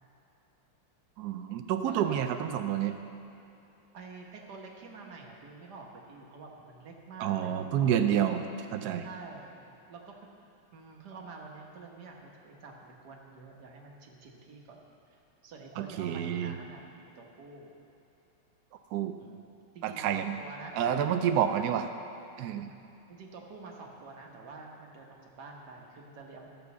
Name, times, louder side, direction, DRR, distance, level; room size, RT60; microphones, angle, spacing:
voice 1, 1.2-2.9 7.2-8.4 8.7-9.1 15.8-16.6 18.9-19.1 19.8-20.4 20.7-21.9 22.4-22.7, right 9 dB, 90° right, 7 dB, 0.8 m, -29 dB
voice 2, 1.8-2.2 3.9-8.2 9.0-10.2 10.7-14.8 15.1-16.8 17.1-17.8 19.2-19.5 19.7-21.4 22.4-22.7 23.1-26.5, right 4 dB, 55° right, 0 dB, 1.7 m, -48 dB
13.5 x 5.4 x 7.0 m, 2.9 s
omnidirectional pair, 2.3 m